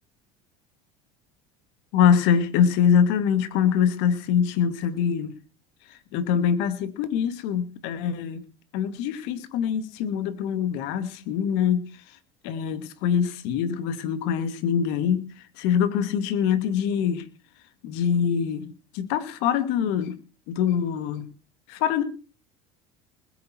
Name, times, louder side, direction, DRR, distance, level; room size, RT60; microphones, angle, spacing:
voice 1, 1.9-5.3 5.9-8.4 8.7-11.8 12.4-15.3 15.6-17.3 17.8-18.6 18.9-20.2 20.5-21.3 21.7-22.0, left 8 dB, 70° left, 11 dB, 2.5 m, -24 dB
21.0 x 9.5 x 4.6 m, 0.36 s
supercardioid pair, 100°, 19 cm